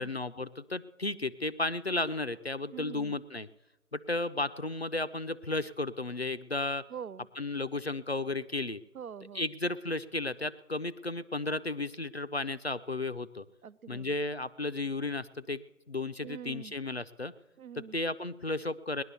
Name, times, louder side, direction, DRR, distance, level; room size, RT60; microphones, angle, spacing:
voice 1, 0.0-3.5 3.9-6.8 7.4-8.8 9.3-13.5 13.9-15.6 15.9-17.3 17.9-19.0, left 2 dB, 45° left, 12 dB, 0.5 m, -34 dB
voice 2, 2.7-3.2 6.9-7.3 8.9-9.5 13.6-14.2 16.2-16.8 17.6-18.0, right 8 dB, 70° right, 18 dB, 0.6 m, -44 dB
19.5 x 11.0 x 6.8 m, 1.1 s
figure-of-eight pair, 170°, 44 cm